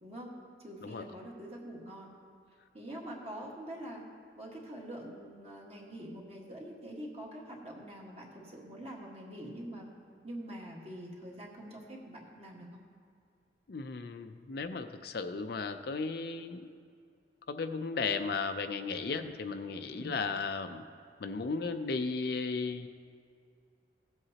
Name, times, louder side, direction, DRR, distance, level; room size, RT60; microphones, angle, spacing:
voice 1, 0.0-0.3 0.6-2.1 2.7-4.0 4.4-9.9 10.2-12.7 19.9-20.1, right 1 dB, 35° right, -2 dB, 1.6 m, -45 dB
voice 2, 13.7-16.6 17.5-20.8 21.2-22.9, left 4 dB, 60° left, 8 dB, 0.5 m, -35 dB
16.5 x 7.9 x 2.9 m, 2.3 s
head